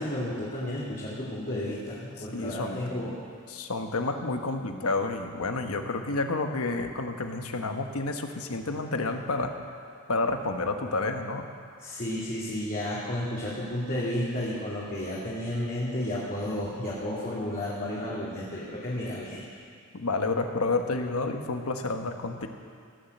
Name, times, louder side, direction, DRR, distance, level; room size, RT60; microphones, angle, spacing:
voice 1, 0.0-3.1 11.8-19.4, left 1 dB, 40° left, -8 dB, 2.5 m, -32 dB
voice 2, 2.3-3.1 3.5-9.5 10.1-11.4 19.9-22.5, left 3 dB, 70° left, 5 dB, 1.1 m, -30 dB
17.0 x 7.3 x 7.9 m, 2.4 s
head